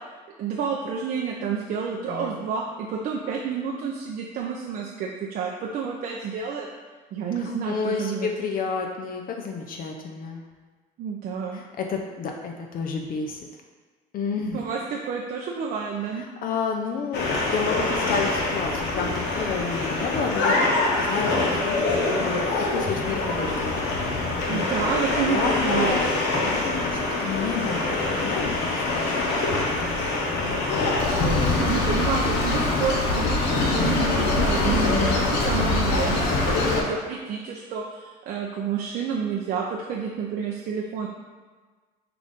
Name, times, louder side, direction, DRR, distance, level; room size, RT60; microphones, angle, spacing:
voice 1, 0.4-6.7 7.1-8.3 11.0-11.6 14.5-16.2 24.5-26.0 31.6-41.1, right 6 dB, 60° right, -2 dB, 0.5 m, -29 dB
voice 2, 7.4-10.4 11.5-13.4 14.1-14.6 16.2-20.6 21.0-23.7 24.5-24.9 25.3-26.1 26.5-29.3 29.8-30.0 31.1-31.6 34.8-35.3, left 5 dB, 55° left, 2 dB, 0.5 m, -31 dB
sound 1, 17.1-36.8, left 2 dB, 80° left, 0.9 m, -24 dB
5.7 x 2.5 x 3.5 m, 1.4 s
cardioid pair, 110°, 17 cm